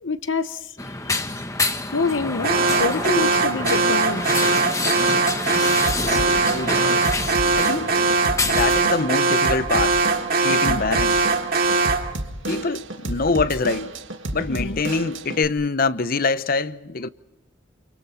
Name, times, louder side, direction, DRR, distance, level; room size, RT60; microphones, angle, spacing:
voice 1, 0.0-0.6 1.9-4.2 10.7-11.0 14.5-14.8, left 4 dB, 80° left, 1.0 m, -26 dB
sound 1, 0.8-8.8, left 2 dB, 15° left, 1.4 m, -27 dB
Alarm, 2.4-12.1, right 4 dB, 50° right, 2.2 m, -21 dB
Drum kit / Drum, 5.9-15.5, right 2 dB, 80° right, 2.1 m, -32 dB
voice 2, 6.0-6.8 7.5-8.0 8.4-10.0 10.3-11.3 12.5-13.9 14.3-17.1, left 4 dB, 50° left, 0.8 m, -24 dB
30.0 x 28.5 x 4.4 m
head